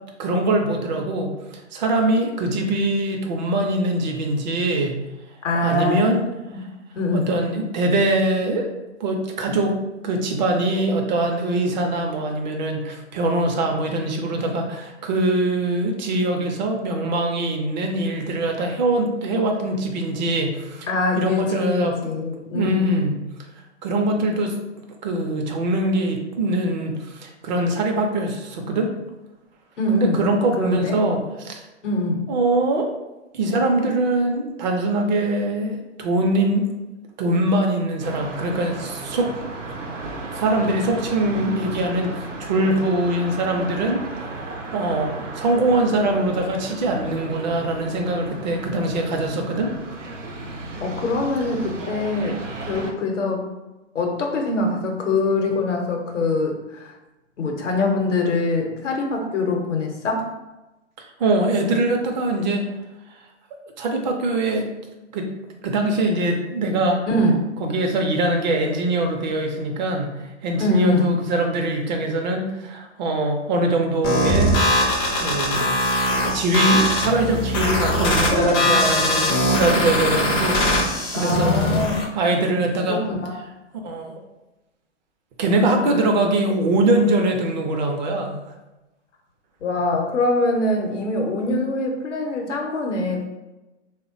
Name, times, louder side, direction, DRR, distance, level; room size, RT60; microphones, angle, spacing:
voice 1, 0.2-1.3 1.7-5.0 5.6-6.2 7.1-8.7 9.0-9.8 10.0-20.9 21.2-22.0 22.5-23.2 23.8-24.6 25.0-28.9 29.9-31.6 32.3-32.9 33.3-36.7 37.2-39.3 40.3-49.7 61.0-62.7 63.8-64.7 65.1-65.3 65.6-67.1 67.6-74.5 75.2-75.7 76.3-80.9 81.1-81.5 82.1-83.0 83.8-84.1 85.4-88.4, right 2 dB, 40° right, 3 dB, 0.5 m, -22 dB
voice 2, 5.4-6.2 7.0-7.3 20.9-22.9 29.8-30.2 30.6-31.0 31.8-32.2 50.8-53.5 53.9-56.9 57.4-60.3 67.1-67.5 70.6-71.1 81.1-82.1 82.9-83.4 89.6-93.2, left 2 dB, 80° left, 2 dB, 0.7 m, -23 dB
sound 1, 38.0-52.9, right 3 dB, 80° right, 0.7 m, -34 dB
sound 2, 74.0-82.0, left 1 dB, 20° left, 0.4 m, -21 dB
3.4 x 2.1 x 2.5 m, 1.0 s
figure-of-eight pair, 115°, 36 cm